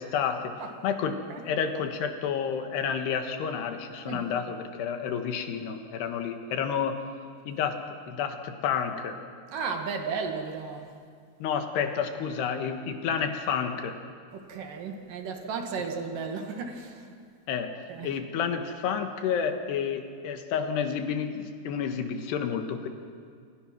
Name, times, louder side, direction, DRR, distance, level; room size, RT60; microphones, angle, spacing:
voice 1, 0.0-0.5 0.8-7.0 7.5-7.8 8.1-9.2 11.4-14.0 17.5-17.7 18.0-22.9, left 7 dB, 80° left, 6 dB, 3.6 m, -30 dB
voice 2, 9.5-10.9 14.3-17.2 17.9-18.2, right 5 dB, 60° right, 4 dB, 3.3 m, -34 dB
28.0 x 26.5 x 6.1 m, 2.2 s
omnidirectional pair, 4.7 m